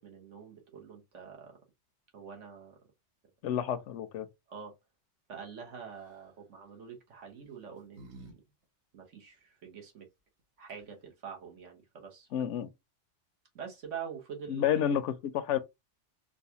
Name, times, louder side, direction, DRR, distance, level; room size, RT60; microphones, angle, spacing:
voice 1, 0.0-1.6 2.1-2.8 4.5-4.7 5.3-8.4 8.9-10.1 10.6-12.5 13.5-15.0, right 7 dB, 85° right, 1.4 m, -45 dB
voice 2, 3.4-4.3 12.3-12.7 14.5-15.6, left 9 dB, 80° left, 0.9 m, -30 dB
sound 1, 5.9-6.3 7.3-8.4 8.6-8.7 10.4-10.5 10.7-11.1, right 3 dB, 70° right, 1.4 m, -52 dB
4.0 x 2.4 x 2.8 m
omnidirectional pair, 1.2 m